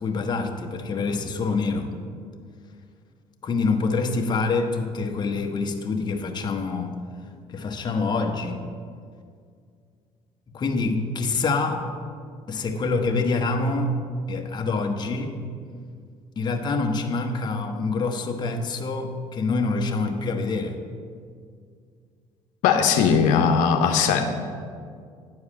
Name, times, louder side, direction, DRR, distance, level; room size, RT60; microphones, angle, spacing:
voice 1, 0.0-1.9 3.4-7.0 7.5-8.6 10.5-11.9 12.5-14.0 14.3-15.4 16.4-20.8, left 3 dB, 35° left, 3 dB, 0.9 m, -26 dB
voice 2, 22.6-24.2, left 6 dB, 85° left, 5 dB, 0.8 m, -19 dB
9.6 x 4.7 x 7.2 m, 2.2 s
cardioid pair, 110°, 13 cm